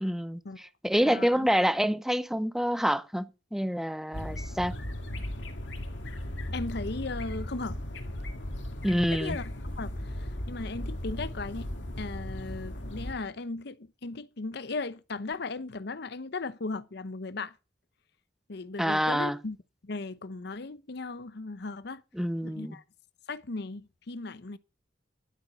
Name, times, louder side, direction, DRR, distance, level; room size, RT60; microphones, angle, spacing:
voice 1, 0.0-4.7 8.8-9.4 18.8-19.4 22.1-22.8, equal, ahead, 0.7 m, -27 dB
voice 2, 1.1-1.5 6.5-7.8 9.1-9.5 9.8-17.5 18.5-19.6 19.8-22.0 22.4-22.8 23.3-24.6, left 3 dB, 65° left, 0.8 m, -37 dB
sound 1, 4.1-13.1, left 1 dB, 85° left, 2.0 m, -37 dB
12.0 x 8.9 x 6.3 m
head